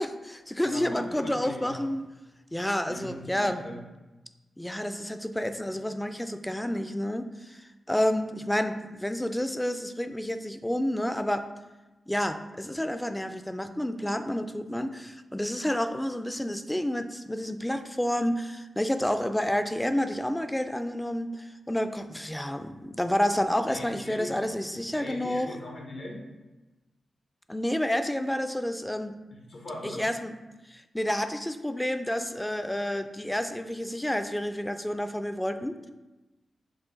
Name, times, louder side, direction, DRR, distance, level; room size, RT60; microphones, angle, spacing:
voice 1, 0.0-2.0 2.5-3.6 4.6-11.5 12.1-25.6 27.5-29.1 29.8-30.4 30.7-35.9, left 1 dB, 10° left, 9 dB, 0.3 m, -29 dB
voice 2, 0.6-1.8 2.8-3.8 23.7-24.4 24.9-26.2 29.3-30.0, left 1 dB, 75° left, -1 dB, 1.1 m, -40 dB
4.7 x 2.5 x 3.8 m, 1.1 s
supercardioid pair, 45°, 0 cm